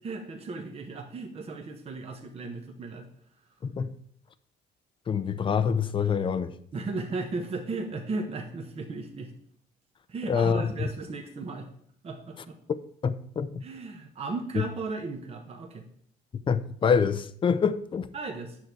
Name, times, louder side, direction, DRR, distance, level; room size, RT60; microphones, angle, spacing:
voice 1, 0.0-3.1 6.7-9.3 10.1-11.7 12.0-12.6 13.6-15.9 18.1-18.6, right 3 dB, 35° right, 1.1 m, -35 dB
voice 2, 3.6-3.9 5.1-6.6 10.3-10.7 13.0-13.6 16.5-18.1, left 6 dB, 30° left, 0.6 m, -26 dB
9.2 x 6.7 x 4.6 m
cardioid pair, 110°, 17 cm